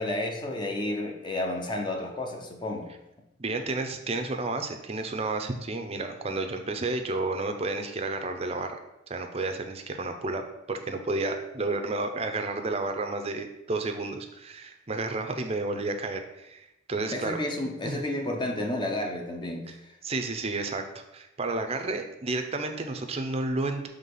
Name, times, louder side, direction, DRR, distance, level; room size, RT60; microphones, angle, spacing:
voice 1, 0.0-2.9 17.1-19.6, left 1 dB, 25° left, 2 dB, 0.7 m, -31 dB
voice 2, 3.4-8.8 9.1-10.4 10.7-17.4 17.8-18.0 19.7-19.8 20.0-23.9, right 3 dB, 30° right, 5 dB, 0.6 m, -31 dB
5.7 x 3.4 x 5.4 m, 0.90 s
head